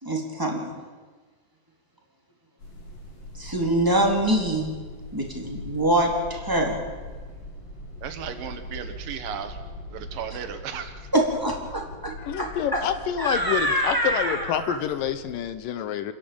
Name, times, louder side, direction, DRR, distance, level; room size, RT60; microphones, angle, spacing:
voice 1, 0.0-0.7 3.4-4.7 5.1-6.8 11.1-12.8 13.2-14.8, right 1 dB, 5° right, 0 dB, 2.9 m, -25 dB
sound 1, 2.6-15.4, left 1 dB, 40° left, 4.9 m, -41 dB
voice 2, 8.0-9.6 9.9-10.9, right 8 dB, 75° right, 8 dB, 3.0 m, -35 dB
voice 3, 12.1-16.1, left 9 dB, 75° left, 12 dB, 2.5 m, -28 dB
28.0 x 11.0 x 8.7 m, 1.4 s
omnidirectional pair, 4.1 m